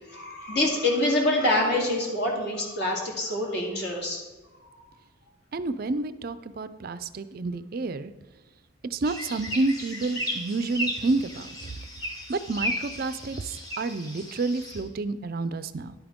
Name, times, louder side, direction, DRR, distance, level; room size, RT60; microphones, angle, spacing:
voice 1, 0.1-4.2, left 1 dB, 50° left, -1 dB, 2.3 m, -26 dB
voice 2, 5.5-8.1 8.9-11.5 12.3-15.9, right 3 dB, 45° right, 13 dB, 0.4 m, -29 dB
sound 1, 9.0-14.8, equal, 20° left, 1.3 m, -35 dB
11.0 x 8.8 x 3.6 m, 1.2 s
head